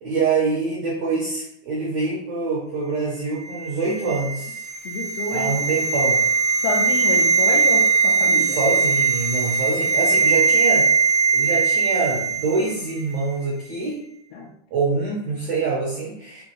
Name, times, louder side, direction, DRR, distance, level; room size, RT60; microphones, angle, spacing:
voice 1, 0.0-4.7 5.3-6.2 8.5-10.9 11.3-14.0 14.7-16.4, right 4 dB, 90° right, -4 dB, 1.5 m, -25 dB
sound 1, 3.4-12.7 13.0-13.1, right 4 dB, 65° right, 1.0 m, -20 dB
voice 2, 4.9-5.7 6.6-8.6 14.3-14.5, left 3 dB, 85° left, -4 dB, 2.5 m, -29 dB
6.1 x 2.7 x 2.9 m, 0.70 s
omnidirectional pair, 4.4 m